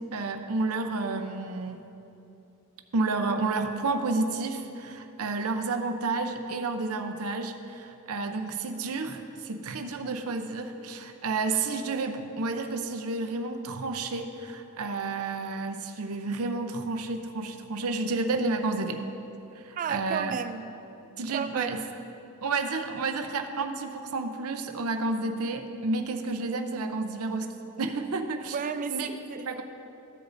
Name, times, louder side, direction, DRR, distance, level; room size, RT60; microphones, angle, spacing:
voice 1, 0.1-1.9 2.9-19.0 19.6-20.4 21.2-21.8 22.4-28.6 28.9-29.1 29.5-29.6, right 3 dB, 70° right, 0.6 m, -31 dB
voice 2, 19.8-20.7 21.3-21.9 28.5-29.5, right 6 dB, 35° right, 0.3 m, -33 dB
14.5 x 8.0 x 2.6 m
head